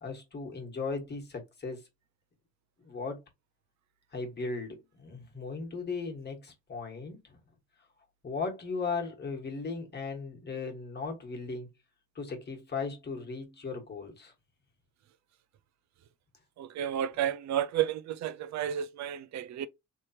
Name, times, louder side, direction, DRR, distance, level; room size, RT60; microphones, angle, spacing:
voice 1, 0.0-1.9 2.8-3.2 4.1-7.4 8.2-11.7 12.1-14.3, left 4 dB, 35° left, 1.5 m, -37 dB
voice 2, 16.6-19.7, right 10 dB, 65° right, 0.5 m, -32 dB
3.3 x 3.0 x 2.8 m
cardioid pair, 90°, 30 cm